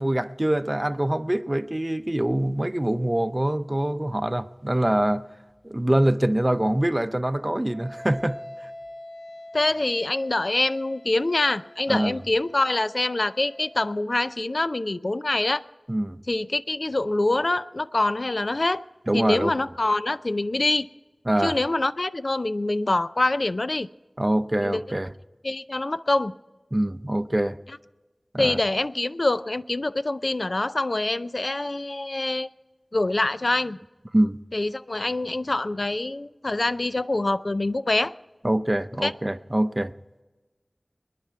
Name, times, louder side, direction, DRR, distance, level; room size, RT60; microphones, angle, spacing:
voice 1, 0.0-5.3 5.6-8.4 11.9-12.2 15.9-16.2 19.1-19.5 21.3-21.6 24.2-25.1 26.7-27.6 28.3-28.6 34.1-34.4 38.4-39.9, right 1 dB, 30° right, 0.6 m, -24 dB
Wind instrument woodwind instrument, 7.7-13.8, left 1 dB, 40° left, 4.4 m, -44 dB
voice 2, 9.5-15.6 16.3-18.8 19.1-20.9 21.4-23.9 24.6-24.8 25.4-26.3 28.4-32.5 32.9-33.8 34.5-38.1 39.0-39.1, left 2 dB, 65° left, 0.4 m, -25 dB
26.5 x 10.0 x 4.7 m
wide cardioid pair, 40°, 0 cm